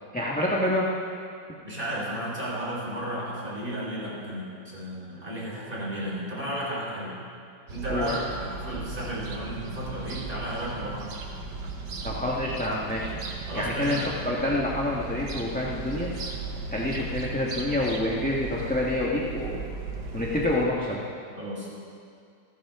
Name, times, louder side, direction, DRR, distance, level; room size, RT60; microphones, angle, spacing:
voice 1, 0.1-0.9 7.9-8.1 12.0-13.1 13.5-14.0 14.2-16.1 16.7-19.6 20.1-21.0, left 1 dB, 5° left, -5 dB, 1.2 m, -27 dB
voice 2, 1.6-7.2 7.7-11.1 13.5-14.1 21.4-21.7, equal, 25° right, -6 dB, 4.8 m, -33 dB
ambience - Moscow city birds in wintertime, 7.7-20.7, right 3 dB, 65° right, 1.8 m, -37 dB
28.5 x 11.5 x 3.7 m, 2.3 s
omnidirectional pair, 2.1 m